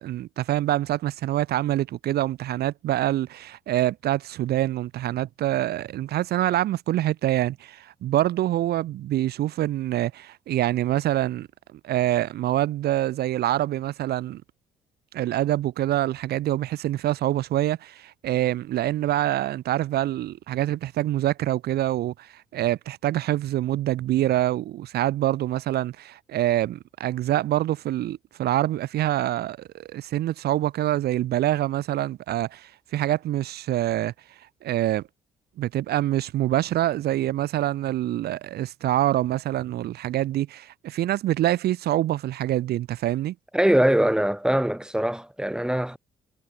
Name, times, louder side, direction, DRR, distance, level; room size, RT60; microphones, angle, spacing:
voice 1, 0.0-11.5 11.8-14.4 15.1-34.1 34.6-35.0 35.6-43.3, right 13 dB, 70° right, 1.6 m, -25 dB
voice 2, 43.5-46.0, right 1 dB, 5° right, 3.2 m, -22 dB
hypercardioid pair, 50°, 17 cm